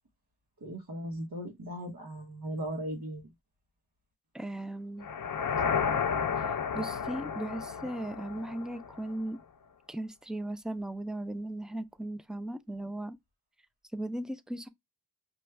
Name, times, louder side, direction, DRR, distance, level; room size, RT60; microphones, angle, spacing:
voice 1, 0.6-3.3, right 1 dB, 60° right, 1.2 m, -38 dB
voice 2, 4.3-5.1 6.7-9.4 9.9-13.2 13.9-14.7, right 1 dB, ahead, 0.4 m, -37 dB
sound 1, 5.0-9.1, left 6 dB, 55° left, 0.5 m, -32 dB
5.1 x 2.3 x 3.2 m
wide cardioid pair, 80°, 39 cm